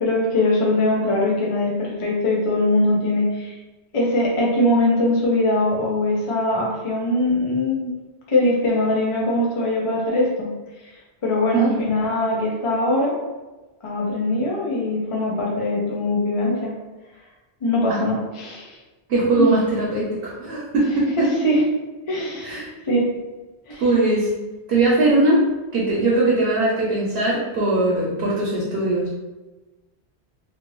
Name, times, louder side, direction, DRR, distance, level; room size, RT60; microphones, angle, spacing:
voice 1, 0.0-3.5 3.9-7.9 8.3-10.5 11.2-13.1 13.8-16.7 17.6-18.8 19.4-19.5 21.2-21.6 22.1-23.1 23.7-23.8, left 1 dB, 40° left, -3 dB, 0.5 m, -21 dB
voice 2, 19.1-21.3 22.4-22.7 23.8-24.3 24.7-25.4 25.7-29.1, right 2 dB, 65° right, -5 dB, 0.9 m, -20 dB
2.6 x 2.6 x 3.0 m, 1.1 s
omnidirectional pair, 1.1 m